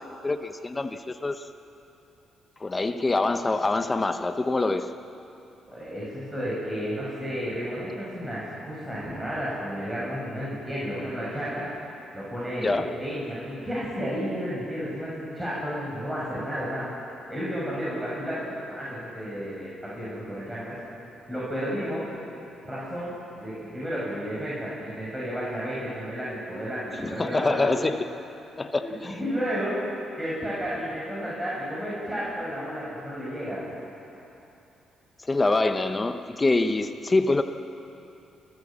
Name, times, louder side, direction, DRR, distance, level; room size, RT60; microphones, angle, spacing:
voice 1, 0.0-1.4 2.6-5.0 12.6-12.9 27.0-28.0 28.6-29.2 35.3-37.4, left 2 dB, 25° left, 8 dB, 0.9 m, -25 dB
voice 2, 5.7-11.6 12.1-16.8 17.3-20.7 21.3-22.0 22.6-23.1 23.4-27.7 28.8-28.9 29.2-29.7 30.2-33.7, equal, 10° right, -8 dB, 7.2 m, -32 dB
29.5 x 14.5 x 7.5 m, 2.8 s
cardioid pair, 90°, 0 cm